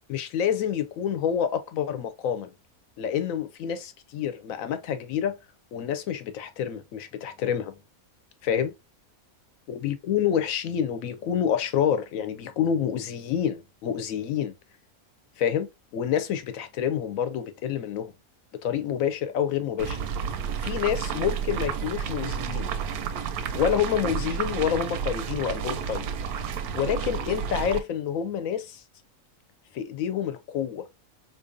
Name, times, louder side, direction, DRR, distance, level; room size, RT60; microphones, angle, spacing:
voice 1, 0.1-2.5 3.0-5.4 5.7-7.8 8.4-8.7 9.7-14.5 15.4-15.7 15.9-18.1 18.6-20.0 20.6-22.7 23.5-26.0 26.7-28.8 29.7-30.9, left 8 dB, 70° left, 1.0 m, -28 dB
sound 1, 19.8-27.8, right 7 dB, 90° right, 1.1 m, -31 dB
3.9 x 2.9 x 2.5 m
omnidirectional pair, 1.5 m